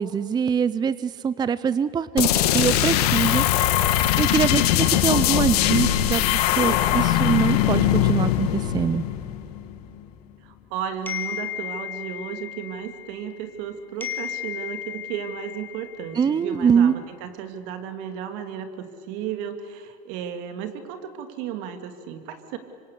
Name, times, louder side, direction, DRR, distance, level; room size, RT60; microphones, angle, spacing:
voice 1, 0.0-9.0 16.1-17.0, right 7 dB, 20° right, 16 dB, 0.6 m, -24 dB
sound 1, 2.2-9.7, left 12 dB, 85° left, 1.9 m, -21 dB
voice 2, 10.4-22.6, right 8 dB, 70° right, 8 dB, 2.8 m, -34 dB
sound 2, 11.1-13.7 14.0-16.6, left 10 dB, 10° left, 2.7 m, -35 dB
26.5 x 24.5 x 8.4 m, 2.3 s
supercardioid pair, 120°, 19 cm